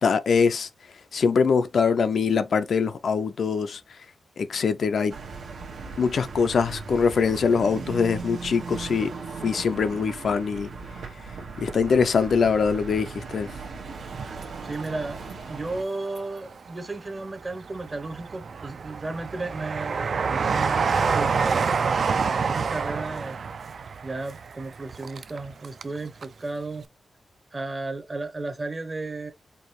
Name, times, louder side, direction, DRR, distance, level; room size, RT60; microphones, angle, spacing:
voice 1, 0.0-0.7 1.1-3.8 4.4-5.1 6.0-9.1 9.4-10.7 11.6-13.5, left 5 dB, 65° left, 0.4 m, -23 dB
sound 1, 5.1-15.8, right 4 dB, 90° right, 1.1 m, -38 dB
Train, 14.0-15.3 15.7-16.7 17.2-26.0 26.2-26.3, right 5 dB, 55° right, 0.3 m, -27 dB
voice 2, 14.6-23.4 24.0-26.8 27.5-29.3, right 2 dB, 25° right, 0.7 m, -34 dB
4.6 x 2.6 x 3.0 m
wide cardioid pair, 170°, 0 cm